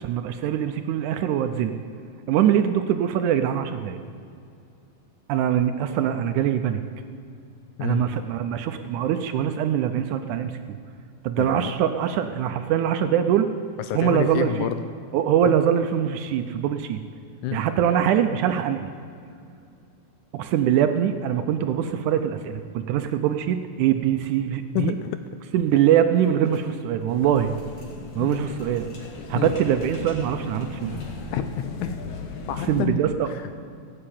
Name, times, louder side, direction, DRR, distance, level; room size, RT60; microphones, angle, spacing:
voice 1, 0.0-1.7 2.3-4.0 5.3-6.8 7.8-10.8 11.2-13.5 13.9-14.7 15.1-17.0 17.5-18.9 20.3-24.9 25.5-27.5 28.2-28.9 29.3-31.0 32.7-33.3, right 9 dB, 75° right, 8 dB, 1.9 m, -23 dB
voice 2, 11.4-11.7 13.9-14.8 15.5-15.6 17.4-17.6 24.8-25.2 28.1-28.4 29.3-29.5 31.3-32.0 32.5-33.0 33.3-33.6, left 10 dB, 80° left, 10 dB, 1.8 m, -28 dB
sound 1, 25.6-31.3, left 1 dB, 40° left, 3.0 m, -46 dB
sound 2, 27.1-32.8, left 4 dB, 65° left, 2.5 m, -37 dB
16.0 x 7.7 x 8.7 m, 2.4 s
omnidirectional pair, 3.9 m